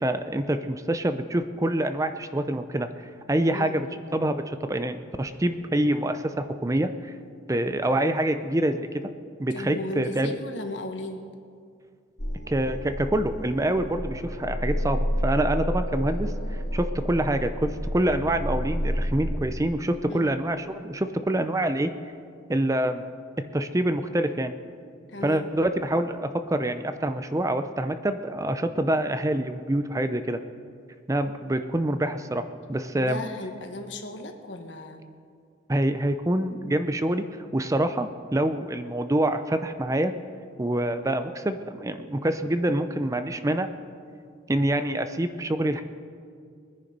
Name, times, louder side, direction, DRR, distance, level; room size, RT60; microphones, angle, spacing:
voice 1, 0.0-7.1 7.5-9.0 9.4-10.4 12.5-21.9 22.5-23.0 23.4-24.6 25.2-30.4 31.1-33.2 35.7-37.3 37.5-40.1 40.6-43.7 44.5-45.8, right 1 dB, 15° right, 9 dB, 0.5 m, -26 dB
voice 2, 9.5-11.2 20.1-20.3 25.1-25.5 33.0-35.1, left 1 dB, 75° left, 5 dB, 1.4 m, -35 dB
sound 1, 12.2-19.2, equal, 60° left, 3.5 m, -30 dB
21.0 x 10.0 x 5.3 m, 2.2 s
head